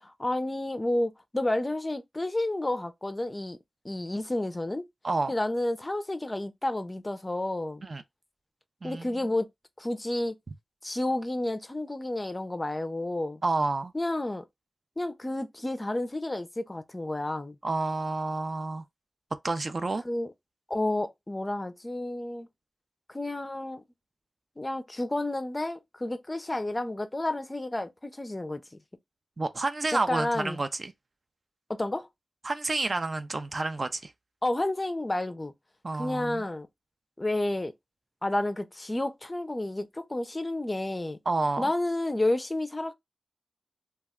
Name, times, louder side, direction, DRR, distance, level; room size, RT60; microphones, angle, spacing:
voice 1, 0.0-3.6 3.8-4.8 5.3-7.9 8.8-9.5 9.8-10.4 10.8-13.4 13.9-14.4 15.0-17.6 20.0-20.3 20.7-22.5 23.1-23.8 24.6-28.6 29.9-30.6 31.7-32.1 34.4-35.5 36.0-36.7 37.2-37.7 38.2-41.2 41.6-42.9, left 1 dB, 25° left, 0.4 m, -30 dB
voice 2, 8.8-9.2 13.4-13.9 17.6-18.8 19.4-20.0 29.4-30.9 32.4-34.1 35.8-36.5 41.3-41.7, right 3 dB, 50° right, 0.4 m, -29 dB
2.2 x 2.1 x 3.5 m
cardioid pair, 55°, 0 cm